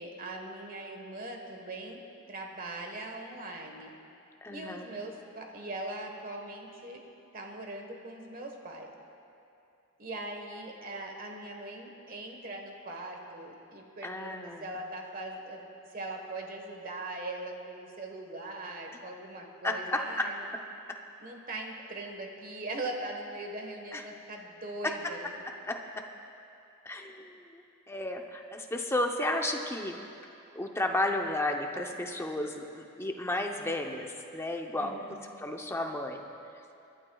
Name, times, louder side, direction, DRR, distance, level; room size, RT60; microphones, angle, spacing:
voice 1, 0.0-2.0 2.3-3.9 4.5-7.0 7.3-8.9 10.0-15.6 15.9-20.5 21.2-25.3 34.8-35.1, right 2 dB, 40° right, 2 dB, 1.3 m, -40 dB
voice 2, 4.4-5.0 14.0-14.6 19.6-20.2 23.9-24.0 24.8-24.9 25.7-26.0 26.8-30.0 30.5-35.1 35.4-36.2, left 1 dB, 10° left, 2 dB, 0.7 m, -33 dB
27.0 x 12.0 x 2.4 m, 2.7 s
head